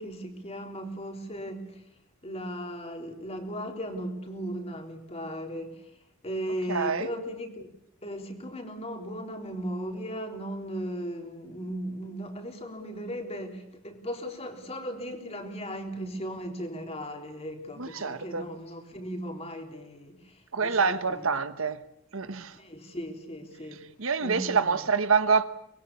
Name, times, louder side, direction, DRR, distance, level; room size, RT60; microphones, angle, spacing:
voice 1, 0.0-1.8 2.2-5.8 6.2-7.7 8.0-21.3 22.6-23.8 24.2-24.8, equal, 30° left, 3.7 m, -37 dB
voice 2, 6.7-7.1 17.8-18.4 20.5-21.8 22.1-22.5 24.0-25.4, right 5 dB, 70° right, 1.3 m, -26 dB
24.0 x 21.5 x 8.5 m
head